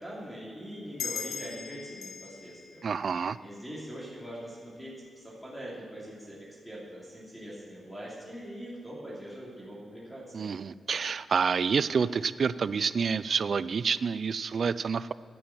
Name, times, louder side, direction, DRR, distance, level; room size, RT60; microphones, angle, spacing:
voice 1, 0.0-3.1 3.4-6.4 6.6-10.5, equal, 5° left, -7 dB, 3.0 m, -43 dB
sound 1, 1.0-4.1, left 6 dB, 90° left, 0.9 m, -40 dB
voice 2, 2.8-3.4 10.3-15.1, right 6 dB, 50° right, 16 dB, 0.3 m, -28 dB
11.0 x 7.8 x 7.2 m, 2.3 s
wide cardioid pair, 135°, 0 cm